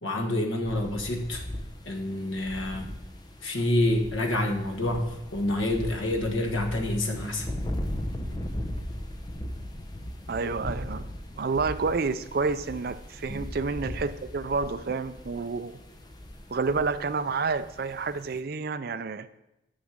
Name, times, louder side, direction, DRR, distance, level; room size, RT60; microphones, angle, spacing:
voice 1, 0.0-1.4 1.8-2.9 3.4-5.0 5.3-7.5 13.3-13.4, left 1 dB, 85° left, 3 dB, 1.4 m, -27 dB
sound 1, 0.6-18.4, left 1 dB, 20° left, 0.7 m, -38 dB
voice 2, 10.3-11.1 11.4-15.8 16.5-19.3, right 4 dB, 50° right, 11 dB, 0.4 m, -29 dB
6.3 x 6.3 x 7.3 m, 0.93 s
head